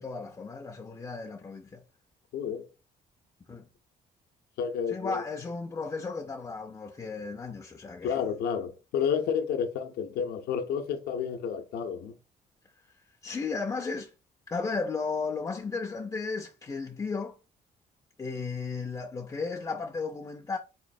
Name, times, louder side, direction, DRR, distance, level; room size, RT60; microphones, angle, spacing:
voice 1, 0.0-1.8 3.5-3.6 4.9-8.2 13.2-14.1 14.5-17.4 18.2-20.6, left 4 dB, 20° left, 0.4 m, -34 dB
voice 2, 2.3-2.7 4.6-5.2 8.0-12.2, left 7 dB, 75° left, 0.5 m, -30 dB
3.9 x 3.0 x 2.6 m
cardioid pair, 140°, 16 cm